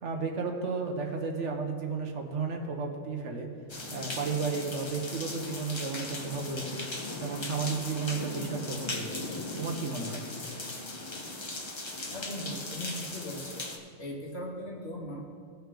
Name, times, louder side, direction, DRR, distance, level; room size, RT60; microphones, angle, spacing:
voice 1, 0.0-3.5 3.9-6.8 7.2-9.3 9.6-10.2, right 4 dB, 65° right, 2 dB, 1.3 m, -33 dB
sound 1, 3.7-13.8, left 2 dB, 25° left, 0.8 m, -38 dB
voice 2, 12.1-13.7 14.0-15.2, equal, 55° left, -2 dB, 1.9 m, -39 dB
17.0 x 5.7 x 3.8 m, 2.1 s
omnidirectional pair, 1.3 m